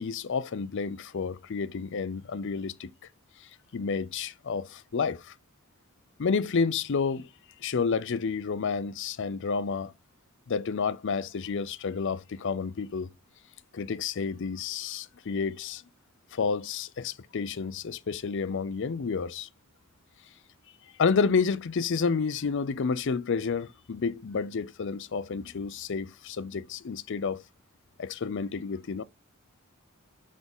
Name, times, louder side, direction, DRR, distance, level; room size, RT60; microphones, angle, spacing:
voice 1, 0.0-2.9 3.7-5.3 6.2-7.3 7.6-9.9 10.5-13.1 13.7-15.8 16.3-19.5 21.0-27.4 28.0-29.0, left 5 dB, 60° left, 0.5 m, -30 dB
6.1 x 3.7 x 5.3 m
head